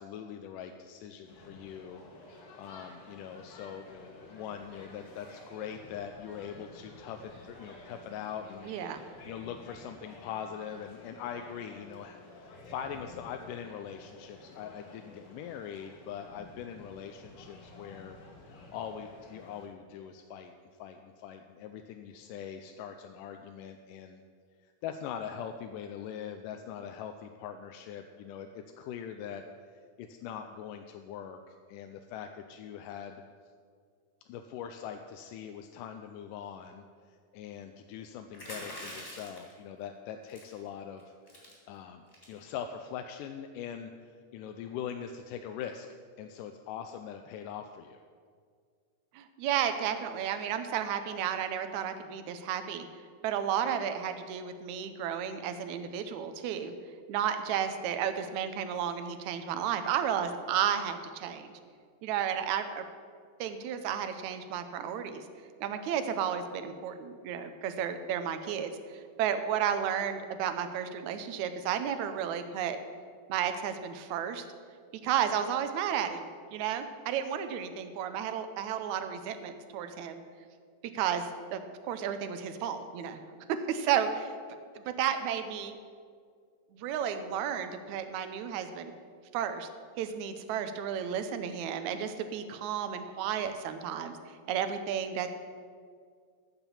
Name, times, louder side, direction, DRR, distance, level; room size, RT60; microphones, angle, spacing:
voice 1, 0.0-2.0 2.3-18.2 18.5-20.5 20.8-24.2 24.8-29.4 30.0-33.2 34.3-41.1 41.7-45.9 46.2-48.0, left 8 dB, 85° left, 6 dB, 2.1 m, -42 dB
sound 1, 1.3-19.7, left 2 dB, 50° left, 2.3 m, -52 dB
voice 2, 8.7-9.0 49.1-52.9 53.2-56.7 57.1-61.5 62.0-62.8 63.4-65.3 65.6-72.8 73.3-74.4 75.0-80.2 80.9-81.6 81.9-83.2 83.7-84.3 84.8-85.8 86.7-88.9 89.3-89.7 90.0-94.2 94.5-95.3, right 9 dB, 75° right, 9 dB, 2.0 m, -32 dB
sound 2, 38.3-39.5 40.3-40.6 41.0-41.1 41.3-41.5 42.1-42.4, equal, 15° left, 3.1 m, -44 dB
14.0 x 6.0 x 7.2 m, 2.1 s
omnidirectional pair, 3.7 m